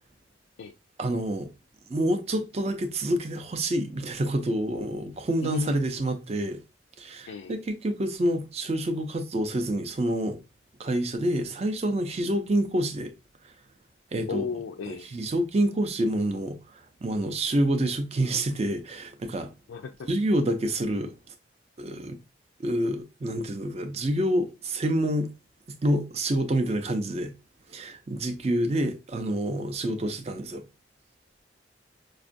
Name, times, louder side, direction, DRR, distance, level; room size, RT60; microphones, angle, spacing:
voice 1, 1.0-1.5 1.9-6.6 7.0-10.4 10.8-13.1 14.1-14.4 14.9-16.6 17.0-19.5 20.0-21.1 21.8-22.2 22.6-25.3 25.8-27.3 27.7-30.6, right 1 dB, 35° right, 0.4 m, -27 dB
voice 2, 5.4-5.9 7.3-7.6 14.3-15.1 19.7-20.1, left 6 dB, 90° left, 0.3 m, -35 dB
5.0 x 2.3 x 2.5 m
head